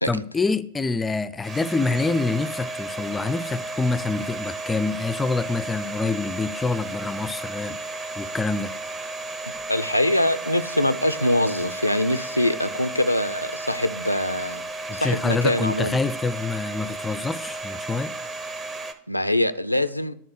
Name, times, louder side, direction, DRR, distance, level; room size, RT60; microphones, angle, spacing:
voice 1, 0.1-7.8 8.2-8.7 14.9-18.1, left 3 dB, 15° left, 0.3 m, -26 dB
Domestic sounds home sounds, 1.4-18.9, right 2 dB, 20° right, 0.8 m, -34 dB
voice 2, 9.7-14.6 14.9-16.0 19.1-20.1, left 1 dB, 90° left, 0.4 m, -23 dB
10.5 x 3.6 x 6.5 m
figure-of-eight pair, 90°, 0 cm